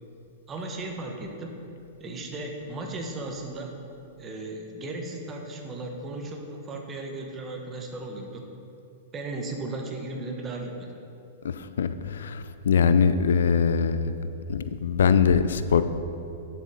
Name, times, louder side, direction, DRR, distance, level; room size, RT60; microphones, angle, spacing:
voice 1, 0.5-1.6 2.0-3.8 4.2-8.4 9.1-10.9, right 2 dB, 25° right, 2 dB, 1.4 m, -36 dB
voice 2, 11.4-14.2 14.5-15.8, left 6 dB, 75° left, 12 dB, 0.4 m, -22 dB
10.5 x 7.1 x 3.9 m, 2.7 s
hypercardioid pair, 105°, 0 cm